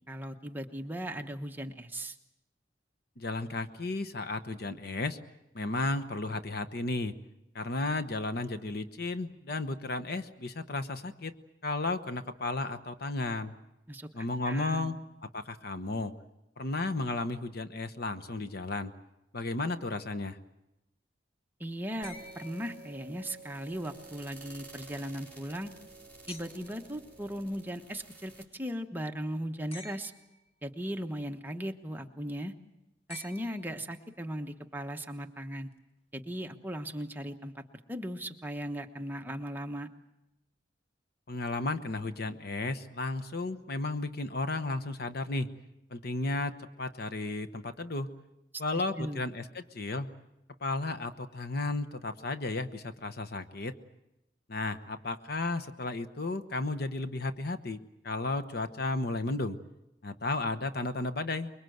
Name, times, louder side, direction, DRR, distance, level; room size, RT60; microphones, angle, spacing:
voice 1, 0.1-2.2 13.9-14.1 14.4-14.9 21.6-25.7 26.3-30.1 30.6-32.5 33.1-35.7 36.1-37.6 37.9-39.9 49.0-49.2, equal, 10° right, 5 dB, 1.1 m, -37 dB
voice 2, 3.2-5.2 5.5-7.1 7.5-11.3 11.6-13.5 14.1-16.1 16.6-18.9 19.3-20.4 41.3-45.5 45.9-48.1 48.6-50.1 50.6-53.7 54.5-57.8 58.0-59.6 60.0-61.5, left 2 dB, 60° left, 10 dB, 1.1 m, -33 dB
sound 1, 22.0-23.4 26.3-26.9 29.7-30.5 33.1-34.1 35.7-35.8, left 3 dB, 35° left, 1.3 m, -50 dB
sound 2, 22.0-28.4, right 3 dB, 10° left, 4.2 m, -51 dB
24.5 x 22.5 x 7.9 m, 0.91 s
head